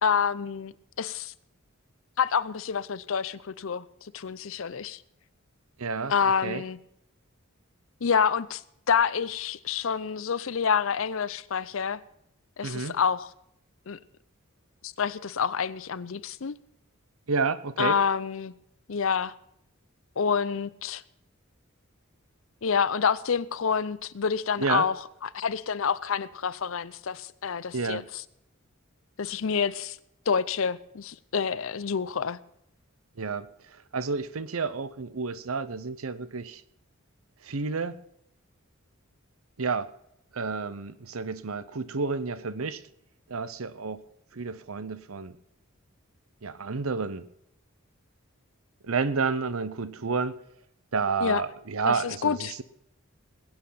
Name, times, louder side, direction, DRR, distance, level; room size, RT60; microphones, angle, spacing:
voice 1, 0.0-1.3 2.2-5.0 6.1-6.8 8.0-8.6 8.9-12.0 12.6-13.3 13.9-14.0 14.8-16.6 17.8-18.5 18.9-19.3 20.2-21.0 22.6-24.9 25.2-28.2 29.2-30.0 30.3-32.4 51.2-51.4 51.8-52.5, left 6 dB, 70° left, 0.6 m, -28 dB
voice 2, 5.8-6.1 6.4-6.6 12.6-13.0 17.3-18.0 24.6-24.9 27.7-28.0 33.2-36.6 37.4-38.0 39.6-39.9 40.3-42.8 43.3-44.0 44.3-45.4 46.4-47.2 48.8-50.4 50.9-52.6, right 4 dB, 85° right, 0.8 m, -30 dB
21.0 x 8.8 x 5.7 m
head